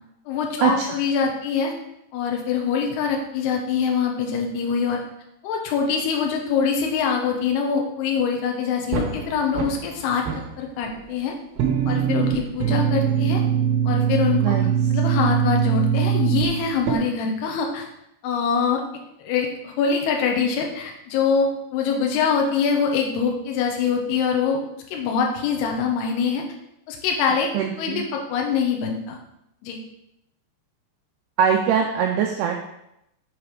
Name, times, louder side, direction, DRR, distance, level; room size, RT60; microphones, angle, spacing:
voice 1, 0.3-1.7 2.1-5.0 5.4-11.4 11.9-13.4 13.8-14.6 14.9-17.9 18.2-18.8 19.2-24.6 24.9-26.4 26.9-27.5 27.8-29.2 29.6-29.8, left 6 dB, 70° left, 1 dB, 2.8 m, -24 dB
sound 1, 8.9-10.0 10.3-11.1 11.6-16.9, right 8 dB, 70° right, 3.0 m, -22 dB
voice 2, 14.4-14.7 27.5-28.0 31.4-32.6, right 8 dB, 85° right, 2 dB, 2.3 m, -22 dB
7.5 x 5.0 x 4.8 m, 0.83 s
omnidirectional pair, 5.3 m